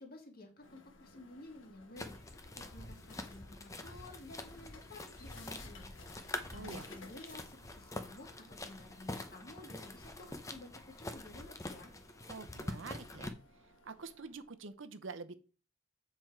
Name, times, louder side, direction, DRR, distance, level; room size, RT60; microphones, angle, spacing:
voice 1, 0.0-5.9 6.2-11.9, left 2 dB, 50° left, 2 dB, 1.9 m, -53 dB
sound 1, 0.6-14.5, left 3 dB, 80° left, 1.3 m, -59 dB
sound 2, 2.0-13.3, left 2 dB, 15° left, 0.7 m, -45 dB
voice 2, 6.5-6.9 12.3-13.3 13.8-15.4, right 4 dB, 80° right, 10 dB, 0.7 m, -46 dB
7.6 x 4.6 x 4.6 m, 0.35 s
head